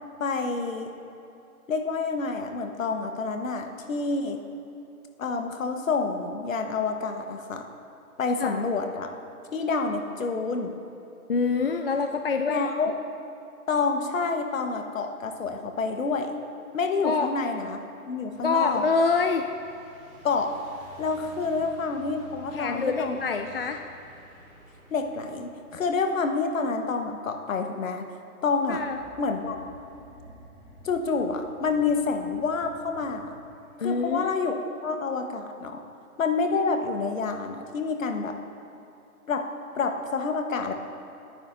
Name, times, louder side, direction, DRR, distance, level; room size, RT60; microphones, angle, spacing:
voice 1, 0.2-0.9 1.7-4.4 5.2-7.6 8.2-9.1 9.5-10.8 12.5-12.9 13.7-16.4 16.7-17.8 18.1-18.8 20.2-20.5 21.0-23.2 24.9-28.1 28.4-28.9 29.2-29.6 30.8-33.3 33.8-34.5 34.8-35.8 36.2-38.4 39.3-39.5 39.7-40.7, left 4 dB, 60° left, 4 dB, 1.3 m, -28 dB
voice 2, 11.3-12.6 17.0-17.3 18.4-19.5 22.5-23.8 28.7-29.0 33.8-34.3, left 4 dB, 40° left, 5 dB, 0.4 m, -26 dB
sound 1, 18.3-25.5, equal, 20° right, 2.5 m, -51 dB
sound 2, 28.6-33.9, equal, 5° left, 2.6 m, -51 dB
23.5 x 9.5 x 2.6 m, 2.8 s
figure-of-eight pair, 145°, 45 cm